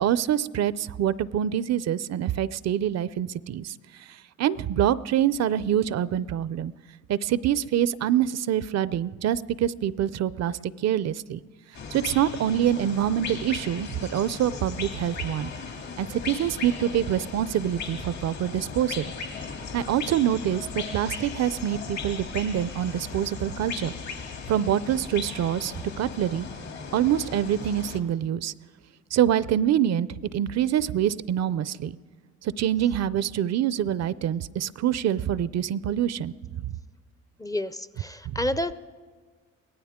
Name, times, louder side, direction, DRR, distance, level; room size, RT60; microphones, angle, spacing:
voice 1, 0.0-3.7 4.4-6.7 7.1-11.4 11.9-15.5 16.0-19.1 19.7-23.9 24.5-26.5 26.9-28.5 29.1-32.0 32.4-36.3 36.6-36.7 38.3-38.4, right 10 dB, 60° right, 18 dB, 0.5 m, -25 dB
sound 1, 11.7-28.0, left 5 dB, 65° left, 2.3 m, -37 dB
voice 2, 37.4-38.7, left 1 dB, 10° left, 14 dB, 0.5 m, -29 dB
23.0 x 17.0 x 3.6 m, 1.5 s
cardioid pair, 90°, 30 cm